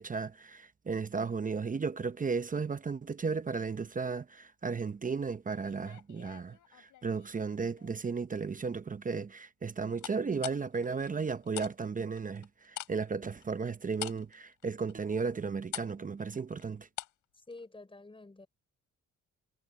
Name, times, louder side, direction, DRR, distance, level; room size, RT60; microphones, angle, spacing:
voice 1, 0.0-16.9, right 5 dB, 25° right, 0.8 m, -35 dB
sound 1, 5.6-7.3 7.8-8.2 10.0-11.7 12.0-17.2 17.5-17.6, left 13 dB, 80° left, 6.2 m, -44 dB
voice 2, 17.3-18.5, left 2 dB, 15° left, 6.4 m, -49 dB
cardioid pair, 90°, 30 cm